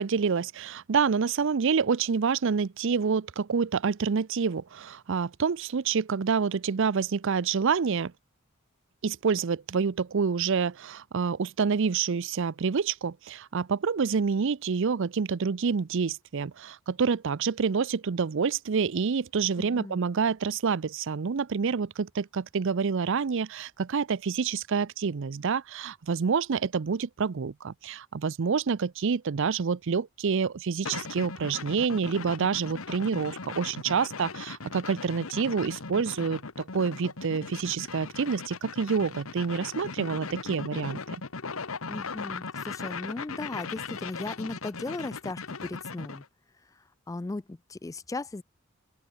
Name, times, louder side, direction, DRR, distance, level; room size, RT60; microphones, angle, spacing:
voice 1, 0.0-8.1 9.0-41.2, right 5 dB, 65° right, 0.5 m, -27 dB
voice 2, 19.6-20.0 41.9-46.2 46.7-48.4, left 2 dB, 15° left, 0.4 m, -37 dB
sound 1, 30.8-46.3, left 4 dB, 85° left, 1.4 m, -38 dB
open air
head